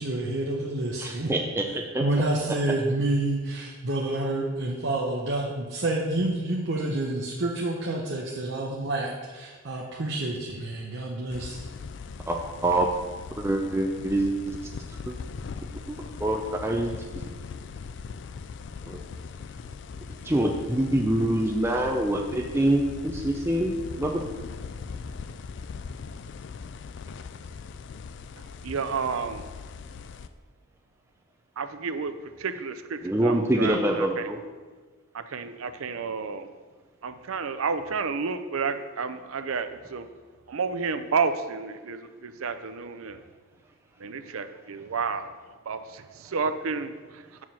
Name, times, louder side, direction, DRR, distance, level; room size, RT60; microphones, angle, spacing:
voice 1, 0.0-1.3 2.0-11.7, right 2 dB, 55° right, -3 dB, 0.8 m, -28 dB
voice 2, 1.0-2.0 12.3-12.9 13.4-14.5 15.1-15.2 15.9-16.9 18.9-19.0 20.2-24.2 33.0-34.4, right 1 dB, 10° right, 1 dB, 0.4 m, -25 dB
sound 1, 11.3-30.3, left 5 dB, 55° left, 0.3 m, -40 dB
voice 3, 28.6-29.5 31.6-34.3 35.1-36.5 37.0-40.1 40.5-43.2 44.0-45.4 45.7-47.4, right 5 dB, 80° right, 10 dB, 0.5 m, -31 dB
7.5 x 4.8 x 5.6 m, 1.4 s
head